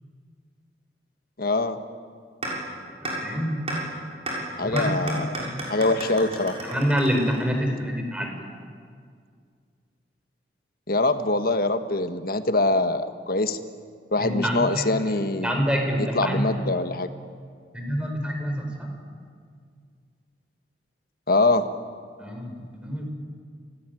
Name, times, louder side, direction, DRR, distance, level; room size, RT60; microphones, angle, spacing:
voice 1, 1.4-1.8 4.6-6.6 10.9-13.6 14.1-15.5 16.0-17.1 21.3-21.7, left 2 dB, 55° left, 9 dB, 1.5 m, -24 dB
sound 1, 2.4-2.5 3.0-3.1 3.7-3.8 4.3-4.4 4.8-7.7, right 2 dB, 35° right, 6.9 m, -32 dB
voice 2, 3.2-3.6 4.6-5.7 6.6-8.3 14.2-14.8 15.4-16.6 17.7-18.6 22.2-23.1, equal, 5° right, 2 dB, 4.8 m, -26 dB
29.0 x 18.5 x 9.2 m, 2.1 s
head